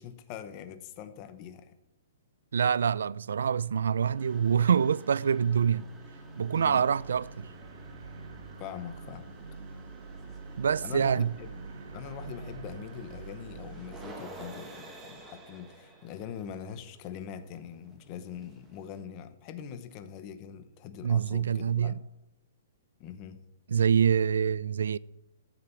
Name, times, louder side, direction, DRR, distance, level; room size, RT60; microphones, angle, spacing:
voice 1, 0.0-1.7 6.5-6.9 8.6-9.3 10.8-22.0 23.0-23.4, left 8 dB, 25° left, 0.9 m, -43 dB
voice 2, 2.5-5.9 6.4-7.5 10.6-11.3 21.0-21.9 23.7-25.0, right 7 dB, 85° right, 0.4 m, -25 dB
sound 1, 4.1-19.1, right 2 dB, 10° right, 1.3 m, -51 dB
sound 2, 5.3-15.5, right 4 dB, 60° right, 1.3 m, -46 dB
13.5 x 6.9 x 8.2 m
hypercardioid pair, 175°, 0 cm